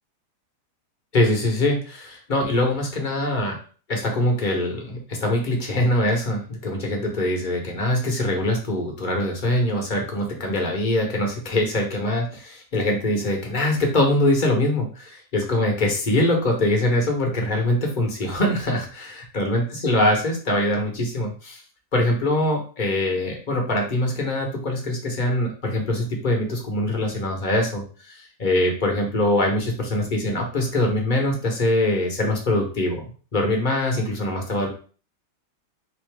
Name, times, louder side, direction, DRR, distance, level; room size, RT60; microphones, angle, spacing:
voice 1, 1.1-3.6 3.9-21.6 21.9-27.8 28.4-33.1 33.3-34.7, left 1 dB, 35° left, 1 dB, 0.9 m, -23 dB
4.1 x 2.7 x 3.3 m, 0.39 s
omnidirectional pair, 1.8 m